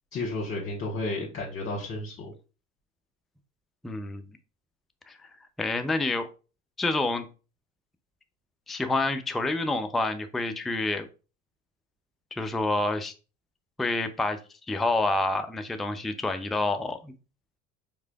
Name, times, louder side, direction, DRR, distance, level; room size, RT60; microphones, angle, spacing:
voice 1, 0.1-2.3, left 2 dB, 35° left, -2 dB, 1.2 m, -32 dB
voice 2, 3.8-4.2 5.1-5.2 5.6-6.3 6.8-7.3 8.7-11.1 12.3-13.1 13.8-14.4 14.7-17.1, left 2 dB, ahead, 8 dB, 0.3 m, -28 dB
4.8 x 3.6 x 2.2 m, 0.34 s
hypercardioid pair, 65°, 40 cm